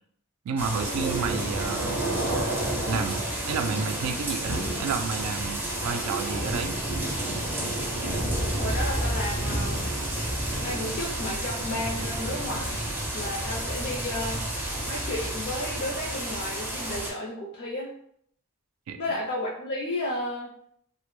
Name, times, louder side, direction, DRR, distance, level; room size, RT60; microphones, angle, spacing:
voice 1, 0.5-2.0 2.9-6.7 18.9-19.0, right 5 dB, 85° right, 8 dB, 0.3 m, -31 dB
sound 1, 0.6-17.1, right 1 dB, 10° right, 0.4 m, -30 dB
voice 2, 8.6-9.8 10.6-12.9 13.1-14.4 14.9-17.9 19.0-20.5, left 1 dB, 50° left, -4 dB, 0.4 m, -33 dB
2.1 x 2.0 x 3.0 m, 0.66 s
head